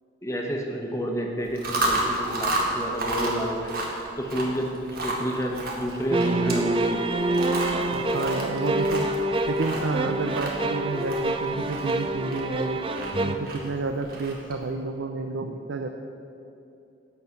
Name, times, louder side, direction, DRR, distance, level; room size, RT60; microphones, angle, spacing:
voice 1, 0.2-3.7 4.2-7.2, equal, 15° left, 1 dB, 1.1 m, -30 dB
Chewing mastication, 1.4-14.6, right 1 dB, 55° right, 1.6 m, -32 dB
sound 1, 6.1-13.4, right 1 dB, 30° right, 0.4 m, -26 dB
voice 2, 8.1-12.8 13.2-15.9, right 3 dB, 90° right, 5 dB, 0.5 m, -30 dB
11.0 x 4.4 x 8.0 m, 2.8 s
head